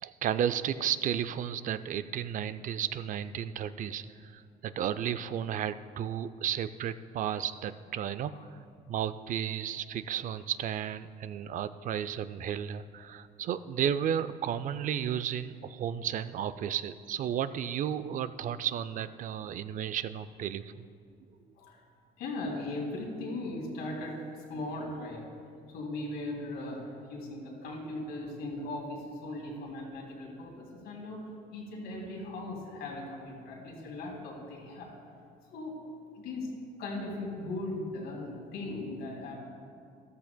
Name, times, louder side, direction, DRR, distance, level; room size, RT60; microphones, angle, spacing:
voice 1, 0.0-8.3 8.9-20.8, right 9 dB, 50° right, 13 dB, 0.4 m, -33 dB
voice 2, 22.2-24.1 24.5-25.2 25.7-31.2 31.5-34.9 35.5-35.8 36.1-36.5 36.8-39.4, left 2 dB, 80° left, -2 dB, 2.8 m, -38 dB
13.5 x 12.5 x 2.2 m, 2.4 s
cardioid pair, 110°, 17 cm